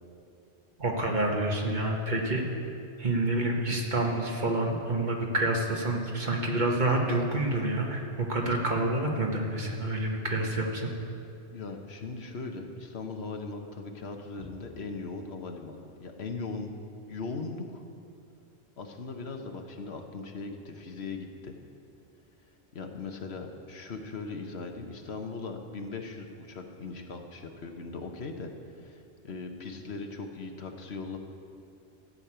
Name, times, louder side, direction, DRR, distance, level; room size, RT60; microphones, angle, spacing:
voice 1, 0.8-2.4 3.0-10.9, right 2 dB, 45° right, 1 dB, 1.5 m, -28 dB
voice 2, 11.5-16.7 17.1-17.8 18.8-21.5 22.7-28.5 28.8-31.2, left 4 dB, 70° left, 4 dB, 1.3 m, -39 dB
14.0 x 6.5 x 8.8 m, 2.5 s
omnidirectional pair, 1.1 m